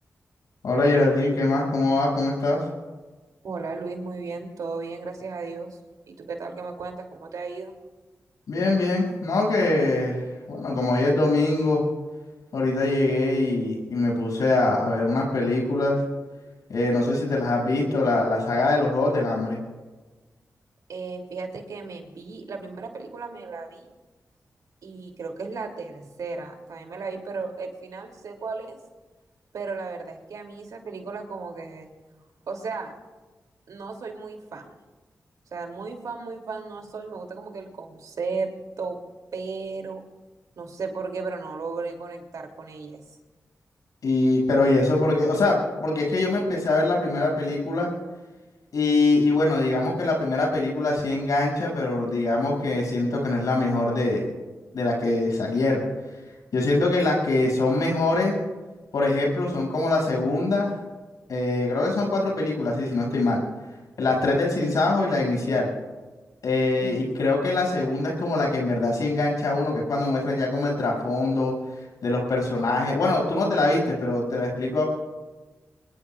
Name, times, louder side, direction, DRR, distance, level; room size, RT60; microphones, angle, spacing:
voice 1, 0.6-2.6 8.5-10.2 10.5-11.8 12.5-16.0 16.7-19.6 44.0-47.9 48.7-54.2 54.7-55.8 56.5-58.4 58.9-60.7 61.3-63.4 64.0-65.7 66.4-71.5 72.0-74.8, left 2 dB, 85° left, -2 dB, 7.1 m, -23 dB
voice 2, 3.4-5.8 6.1-7.8 20.9-23.9 24.8-28.8 29.5-31.9 32.5-32.9 33.7-34.8 35.5-39.0 39.3-40.0 40.6-43.2 66.8-67.1, right 4 dB, 85° right, 3 dB, 3.0 m, -35 dB
25.0 x 22.5 x 2.5 m, 1.2 s
cardioid pair, 65°, 6 cm